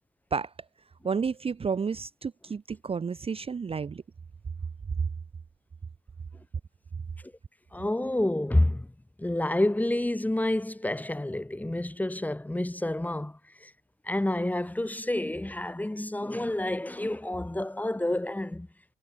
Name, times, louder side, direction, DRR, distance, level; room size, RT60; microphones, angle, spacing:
voice 1, 1.0-4.0, right 5 dB, 30° right, 0.7 m, -31 dB
voice 2, 7.7-8.9 9.2-13.7 14.0-18.7, left 1 dB, 10° left, 1.4 m, -29 dB
cardioid pair, 90°, 20 cm